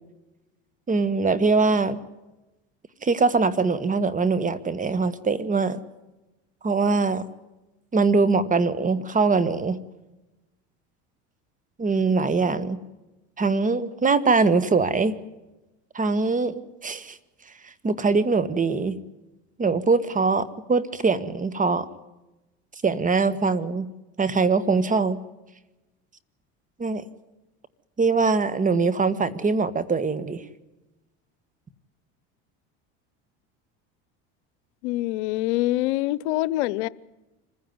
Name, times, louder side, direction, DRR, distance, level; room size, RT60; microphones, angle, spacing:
voice 1, 0.9-2.0 3.0-5.8 6.6-7.2 7.9-9.8 11.8-12.8 13.4-15.1 16.0-17.2 17.6-19.0 19.6-21.9 22.8-23.9 24.2-25.2 26.8-27.0 28.0-30.4, right 4 dB, 25° right, 1.6 m, -22 dB
voice 2, 34.8-36.9, left 17 dB, 85° left, 0.8 m, -25 dB
26.0 x 15.5 x 9.5 m
supercardioid pair, 100°, 33 cm